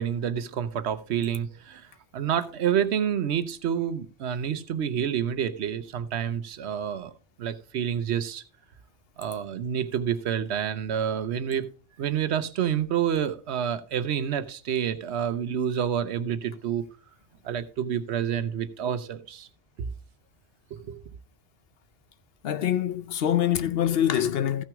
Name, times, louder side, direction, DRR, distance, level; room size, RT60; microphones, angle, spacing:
voice 1, 0.0-7.1 7.4-8.4 9.2-11.7 12.0-16.8 17.4-19.5 20.7-21.0, right 8 dB, 75° right, 1.0 m, -28 dB
voice 2, 22.4-24.6, left 10 dB, 65° left, 0.8 m, -25 dB
14.5 x 5.9 x 3.5 m
omnidirectional pair, 1.2 m